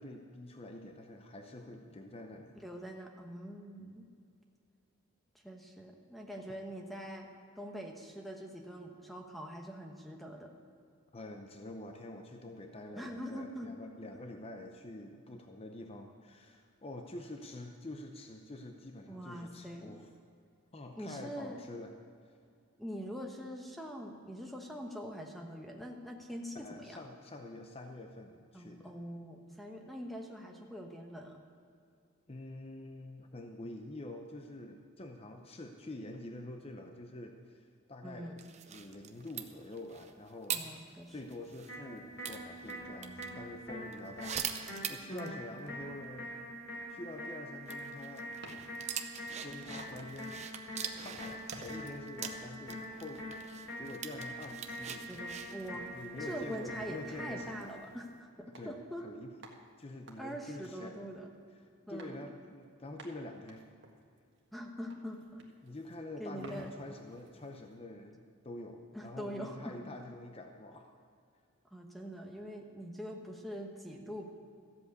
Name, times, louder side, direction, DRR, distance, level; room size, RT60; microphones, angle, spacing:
voice 1, 0.0-2.5 11.1-20.1 20.7-21.9 22.3-22.4 26.5-28.9 32.3-40.8 41.1-46.3 46.9-48.3 49.4-50.4 51.0-53.3 53.5-55.1 55.7-57.8 58.6-58.8 59.0-59.3 59.8-61.1 61.9-63.7 65.6-70.9, left 1 dB, 25° left, 4 dB, 0.7 m, -46 dB
voice 2, 2.5-4.1 5.4-7.3 7.6-10.5 12.9-13.7 19.1-20.0 21.0-21.6 22.8-27.0 28.5-31.4 38.0-38.4 40.5-41.1 45.1-45.4 55.1-55.9 56.2-59.1 60.2-61.3 61.9-62.2 64.5-65.5 66.2-66.8 68.9-70.0 71.7-74.3, equal, ahead, 2 dB, 1.0 m, -44 dB
sound 1, 38.4-41.8 42.2-43.3 43.9-45.4 45.7-45.8 46.0-46.1 47.7-57.1 57.6-57.9, right 8 dB, 30° right, 0.7 m, -43 dB
sound 2, 41.7-57.7, equal, 60° left, 3.5 m, -44 dB
sound 3, 48.3-50.2 50.5-50.8 51.5-52.8 53.3-53.7 54.2-58.1 58.5-58.7 59.0-59.1 59.4-61.5 62.0-62.3 62.6-62.7 63.0-64.6 64.9-66.0 66.4-67.8, right 2 dB, 55° right, 1.6 m, -56 dB
14.0 x 8.0 x 8.2 m, 2.4 s
head